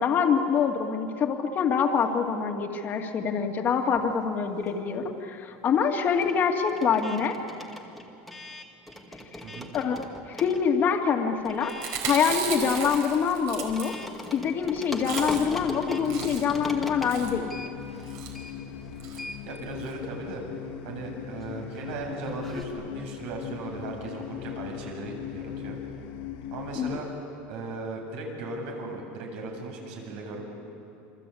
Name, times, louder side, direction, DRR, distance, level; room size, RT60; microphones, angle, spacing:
voice 1, 0.0-7.4 9.3-9.4 9.7-11.7 12.1-13.9 14.3-17.5 26.8-27.0, left 6 dB, 30° left, 4 dB, 2.3 m, -25 dB
sound 1, 3.8-5.1 5.3-22.6, left 1 dB, ahead, 2.0 m, -41 dB
Chewing mastication, 11.7-14.3 14.6-14.7 14.9-15.6 15.9-16.6 17.1-17.4 18.0-18.3 19.0-19.2 19.5-19.6 19.8-19.9, right 7 dB, 50° right, 4.6 m, -35 dB
sound 2, 14.9-27.0, left 10 dB, 70° left, 1.8 m, -39 dB
voice 2, 19.2-20.4 20.8-25.8 26.5-27.1 27.5-30.4, right 3 dB, 70° right, 1 dB, 7.7 m, -37 dB
28.0 x 24.5 x 8.6 m, 2.7 s
supercardioid pair, 145°, 6 cm